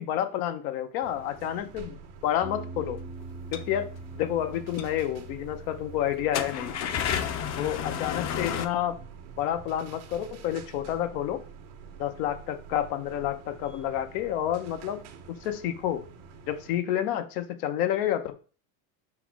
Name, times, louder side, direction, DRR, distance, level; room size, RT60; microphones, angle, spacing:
voice 1, 0.0-3.0 3.5-7.1 7.6-9.0 9.4-11.4 12.0-15.0 15.3-16.0 16.5-18.4, left 11 dB, 80° left, 8 dB, 0.7 m, -29 dB
sound 1, 1.0-16.8, right 6 dB, 70° right, 0.9 m, -47 dB
sound 2, 2.4-12.6, right 3 dB, 20° right, 0.3 m, -46 dB
sound 3, 3.3-3.7 4.4-4.5 4.8-4.9 5.3-5.4 6.2-8.7, left 8 dB, 40° left, 0.5 m, -30 dB
5.6 x 2.1 x 4.6 m, 0.38 s
supercardioid pair, 100°, 44 cm